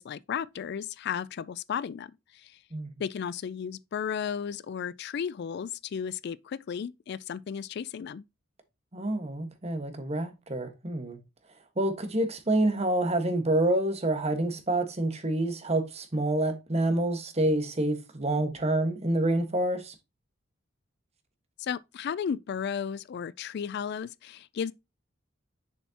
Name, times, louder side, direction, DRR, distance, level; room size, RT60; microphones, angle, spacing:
voice 1, 0.0-2.6 3.0-8.2 21.6-24.7, left 7 dB, 55° left, 0.3 m, -34 dB
voice 2, 8.9-11.2 11.8-19.9, right 1 dB, 35° right, 1.5 m, -27 dB
6.7 x 6.3 x 2.9 m
head